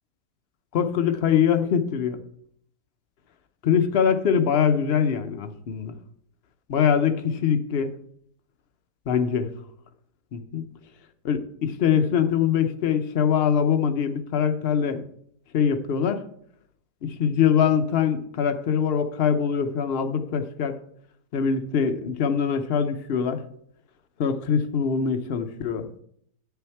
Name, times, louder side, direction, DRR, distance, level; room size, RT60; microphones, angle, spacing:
voice 1, 0.7-2.2 3.6-5.9 6.7-7.9 9.1-9.5 10.3-10.6 11.2-15.0 15.5-16.2 17.0-20.8 21.3-23.4 24.2-25.9, left 7 dB, 55° left, 7 dB, 0.7 m, -23 dB
8.9 x 7.0 x 4.5 m, 0.67 s
omnidirectional pair, 1.8 m